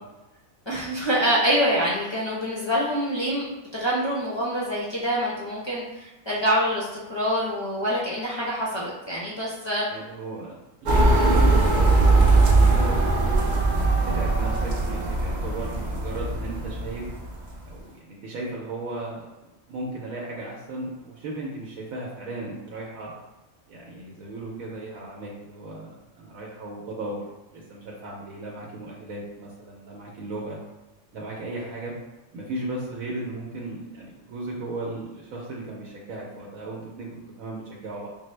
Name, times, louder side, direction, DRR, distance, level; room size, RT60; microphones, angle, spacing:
voice 1, 0.7-3.5 3.7-9.9, equal, 45° left, -6 dB, 0.3 m, -25 dB
voice 2, 9.9-10.5 10.8-17.1 17.7-19.3 19.7-23.1 23.7-27.2 27.5-30.6 31.1-31.9 32.3-38.1, right 2 dB, 85° right, -3 dB, 1.1 m, -35 dB
sound 1, 10.9-17.4, right 2 dB, 60° right, 0.4 m, -20 dB
5.0 x 2.0 x 3.1 m, 1.0 s
omnidirectional pair, 1.4 m